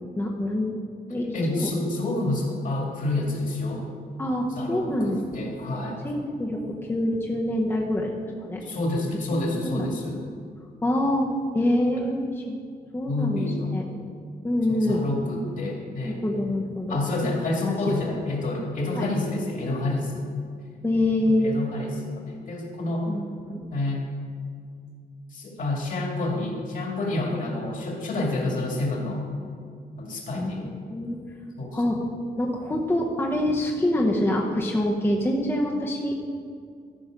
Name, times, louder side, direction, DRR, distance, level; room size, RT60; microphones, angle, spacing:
voice 1, 0.2-0.8 1.1-1.7 4.2-5.2 6.0-8.1 8.4-8.6 9.3-9.8 10.8-11.3 11.5-12.6 12.9-13.5 13.7-13.8 14.4-15.1 16.0-17.0 17.9-18.1 19.0-19.1 20.8-21.5 23.1-23.6 30.4-30.5 30.9-31.2 31.7-32.0 32.4-36.2, left 1 dB, 15° left, -2 dB, 0.8 m, -25 dB
voice 2, 1.3-3.9 4.6-6.1 8.6-10.2 13.1-13.8 14.7-16.2 16.9-20.3 21.2-23.1 23.7-24.1 25.3-29.2 30.0-30.7 31.6-32.0, left 2 dB, 55° left, 0 dB, 2.1 m, -28 dB
14.0 x 5.8 x 5.1 m, 2.2 s
wide cardioid pair, 150°, 17 cm